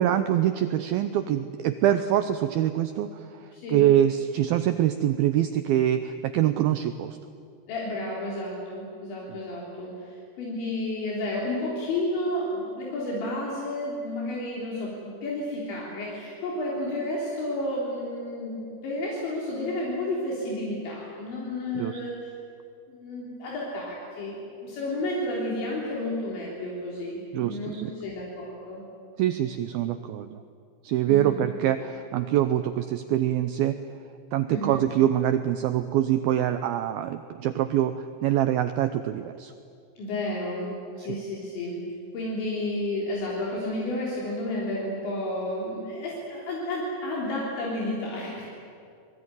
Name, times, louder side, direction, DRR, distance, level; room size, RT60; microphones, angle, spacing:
voice 1, 0.0-3.2 3.7-7.1 21.7-22.0 27.3-27.9 29.2-30.4 30.8-33.8 34.3-39.5, right 11 dB, 85° right, 10 dB, 2.1 m, -24 dB
voice 2, 3.5-3.9 7.7-22.3 22.9-28.8 31.1-31.4 34.5-34.8 40.0-41.8 42.1-48.4, left 1 dB, 75° left, -4 dB, 5.9 m, -31 dB
25.5 x 20.5 x 9.7 m, 2.4 s
omnidirectional pair, 5.3 m